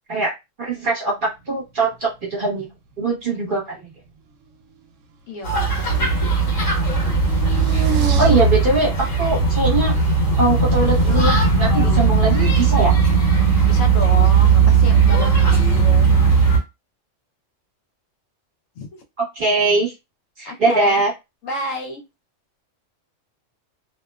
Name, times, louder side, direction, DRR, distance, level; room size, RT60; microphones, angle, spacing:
voice 1, 0.6-2.7 3.0-3.8 8.2-9.9 10.4-12.9 19.2-19.9 20.4-21.1, right 3 dB, 45° right, -3 dB, 1.0 m, -21 dB
sound 1, 1.4-2.4 2.6-3.6 3.9-14.3 14.9-15.3, right 7 dB, 75° right, 0.9 m, -35 dB
voice 2, 5.3-6.3 13.7-16.1 18.8-19.0 20.4-21.0 21.4-22.0, left 2 dB, 90° left, 3 dB, 1.1 m, -31 dB
sound 2, 5.4-16.6, right 5 dB, 70° left, 1.4 m, -17 dB
2.8 x 2.1 x 2.3 m, 0.23 s
omnidirectional pair, 1.3 m